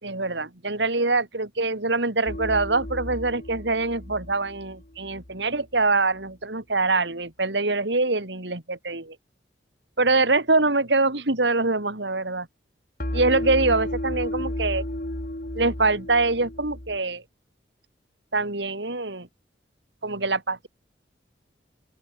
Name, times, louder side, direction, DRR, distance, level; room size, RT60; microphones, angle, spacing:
voice 1, 0.0-9.2 10.0-12.5 13.1-14.8 15.5-17.2 18.3-19.3 20.0-20.7, right 3 dB, 70° right, 2.7 m, -24 dB
sound 1, 2.3-5.3 13.0-17.0, left 1 dB, 45° left, 2.9 m, -33 dB
open air
head